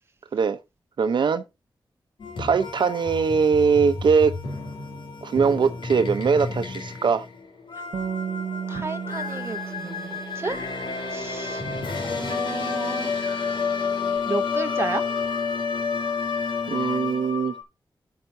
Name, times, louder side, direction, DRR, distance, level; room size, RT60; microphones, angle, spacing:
voice 1, 1.0-1.4 2.4-4.3 5.2-7.3 16.7-17.5, right 5 dB, 70° right, 0.8 m, -21 dB
sound 1, 2.2-17.6, left 5 dB, 80° left, 2.7 m, -30 dB
Bass guitar, 7.9-14.2, right 7 dB, 90° right, 1.1 m, -36 dB
voice 2, 8.7-10.6 11.1-11.6 12.0-13.1 14.3-15.0, right 3 dB, 30° right, 0.9 m, -32 dB
13.5 x 5.9 x 2.7 m
wide cardioid pair, 165°, 8 cm